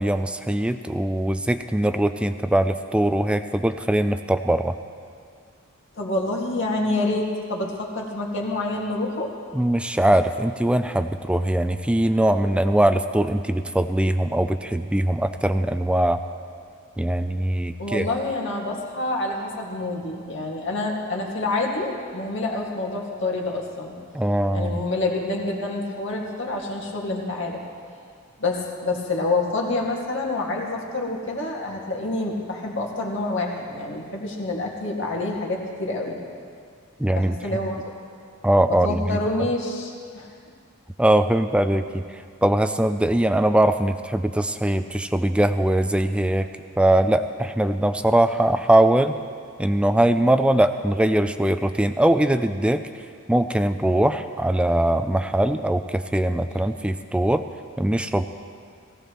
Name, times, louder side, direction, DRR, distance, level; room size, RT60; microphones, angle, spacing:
voice 1, 0.0-4.8 9.5-16.2 17.0-18.0 24.1-24.8 37.0-37.6 38.4-39.2 41.0-42.0 42.4-46.5 46.8-49.2 49.6-52.8 53.3-57.4 57.8-58.2, right 1 dB, 5° right, 9 dB, 0.3 m, -21 dB
voice 2, 6.0-9.3 17.8-23.9 24.5-27.6 28.4-36.2 37.1-37.8 38.7-40.3, left 2 dB, 60° left, -1 dB, 2.1 m, -27 dB
19.0 x 16.0 x 3.1 m, 2.3 s
head